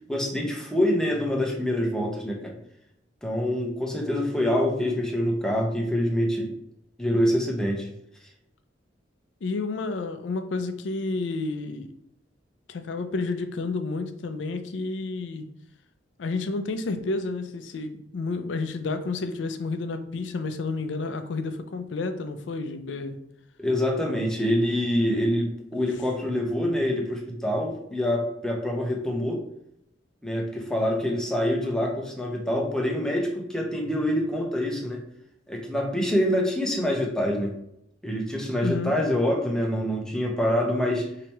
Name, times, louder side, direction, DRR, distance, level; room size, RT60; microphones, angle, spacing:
voice 1, 0.1-2.5 3.2-6.5 7.0-7.9 23.6-29.4 30.2-35.0 35.5-37.6 38.0-41.1, left 1 dB, 5° left, -1 dB, 0.7 m, -25 dB
voice 2, 9.4-11.9 12.7-15.5 16.2-23.2 38.6-39.0, left 3 dB, 85° left, 8 dB, 0.4 m, -30 dB
2.9 x 2.9 x 4.5 m, 0.78 s
head